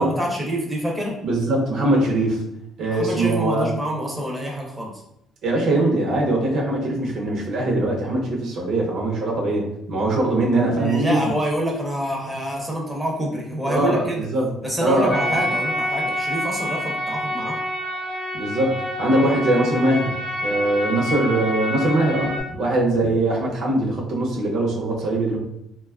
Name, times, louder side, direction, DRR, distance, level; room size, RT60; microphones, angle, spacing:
voice 1, 0.0-1.2 2.9-4.9 10.8-14.3 14.6-17.6 19.2-19.4, equal, 10° right, -2 dB, 0.5 m, -26 dB
voice 2, 1.2-2.4 2.8-3.7 5.4-11.2 13.7-14.5 14.8-15.4 18.3-25.4, right 2 dB, 70° right, -2 dB, 0.6 m, -22 dB
sound 1, 15.1-22.4, left 1 dB, 40° left, 0.5 m, -27 dB
2.6 x 2.2 x 2.3 m, 0.78 s
cardioid pair, 125°, 0 cm